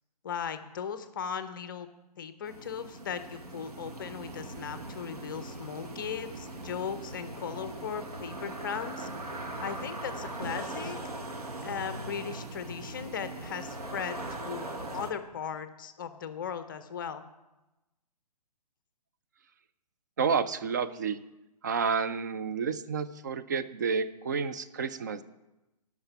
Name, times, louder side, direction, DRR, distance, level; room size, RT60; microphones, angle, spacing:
voice 1, 0.2-1.9 2.2-9.1 9.6-11.0 11.6-17.2, left 7 dB, 30° left, 11 dB, 0.5 m, -37 dB
sound 1, 2.4-15.1, right 2 dB, 65° right, 1.4 m, -40 dB
voice 2, 20.2-21.2 21.6-25.2, right 5 dB, 30° right, 12 dB, 0.4 m, -30 dB
14.0 x 5.9 x 5.8 m, 1.0 s
figure-of-eight pair, 130°, 21 cm